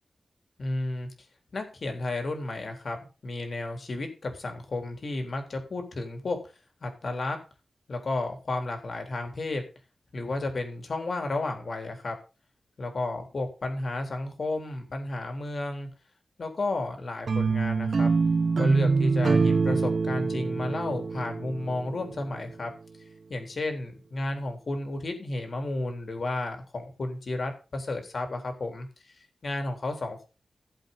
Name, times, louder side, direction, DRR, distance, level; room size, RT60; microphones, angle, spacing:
voice 1, 0.6-1.1 1.5-6.4 6.8-7.4 7.9-9.6 10.1-12.2 12.8-15.9 16.4-18.1 18.6-22.7 23.3-30.3, left 2 dB, 60° left, 5 dB, 3.8 m, -32 dB
sound 1, 17.3-22.4, right 4 dB, 60° right, 0.9 m, -25 dB
16.0 x 7.8 x 4.0 m, 0.32 s
wide cardioid pair, 105°, 0 cm